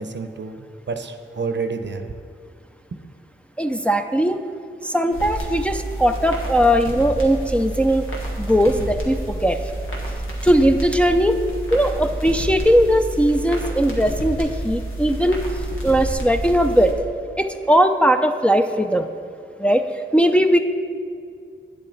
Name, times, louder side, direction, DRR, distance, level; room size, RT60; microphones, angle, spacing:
voice 1, 0.0-2.1, right 4 dB, 60° right, 7 dB, 0.7 m, -29 dB
voice 2, 3.6-4.4 4.8-8.1 8.4-9.7 10.4-11.4 11.7-15.4 15.8-16.9 17.4-19.1 19.6-19.8 20.1-20.6, equal, 5° left, 6 dB, 0.5 m, -19 dB
sound 1, 5.1-16.9, right 1 dB, 85° left, 1.5 m, -29 dB
9.2 x 7.6 x 3.9 m, 2.3 s
cardioid pair, 50°, 20 cm